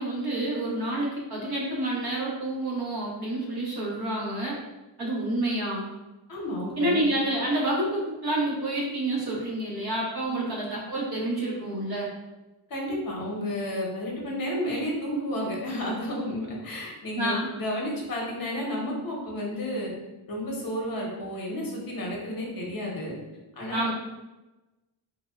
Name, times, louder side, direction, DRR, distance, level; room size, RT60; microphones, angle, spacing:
voice 1, 0.0-4.6 5.0-5.9 6.8-12.1 17.1-17.5 23.7-23.9, right 1 dB, 50° right, -5 dB, 1.0 m, -28 dB
voice 2, 6.3-7.0 10.2-10.5 12.7-19.9 20.3-23.2 23.6-23.9, left 1 dB, 45° left, -2 dB, 0.8 m, -31 dB
3.4 x 2.2 x 2.3 m, 1.1 s
wide cardioid pair, 130°, 47 cm